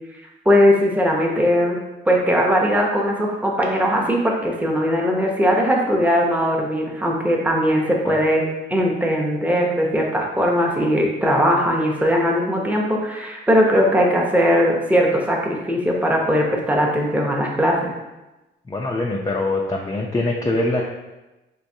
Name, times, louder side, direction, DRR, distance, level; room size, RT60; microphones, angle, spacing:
voice 1, 0.5-1.8 2.1-17.9, equal, 5° right, -2 dB, 0.8 m, -19 dB
voice 2, 18.7-20.8, left 2 dB, 20° left, -1 dB, 0.4 m, -23 dB
4.6 x 2.5 x 2.7 m, 1.0 s
cardioid pair, 90°, 20 cm